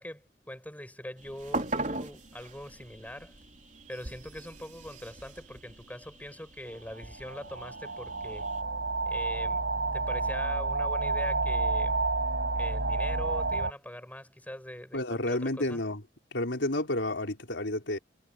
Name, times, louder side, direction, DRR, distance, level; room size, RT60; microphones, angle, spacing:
voice 1, 0.0-3.3 3.9-8.5 9.1-12.0 12.5-15.8, left 1 dB, 10° left, 7.9 m, -43 dB
sound 1, 1.2-8.6, right 2 dB, 45° right, 3.9 m, -40 dB
sound 2, 7.0-13.7, right 3 dB, 80° right, 4.8 m, -30 dB
voice 2, 14.9-16.0 16.3-18.0, left 1 dB, 90° left, 4.4 m, -30 dB
head